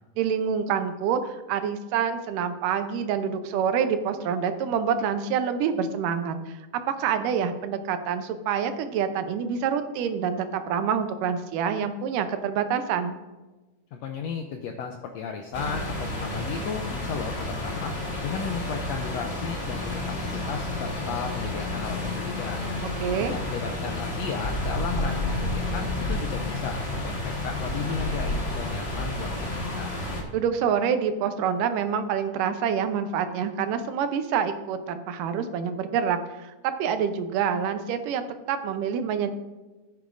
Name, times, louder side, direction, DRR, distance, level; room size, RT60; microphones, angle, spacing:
voice 1, 0.2-6.6 7.0-13.2 22.8-23.4 30.3-39.3, right 7 dB, 85° right, 8 dB, 2.4 m, -27 dB
voice 2, 13.9-18.0 18.2-22.6 23.2-29.3 29.8-29.9, left 6 dB, 85° left, 4 dB, 1.5 m, -34 dB
sound 1, 15.5-30.2, left 2 dB, 45° left, 0.8 m, -30 dB
15.0 x 8.7 x 2.6 m, 1.2 s
omnidirectional pair, 3.7 m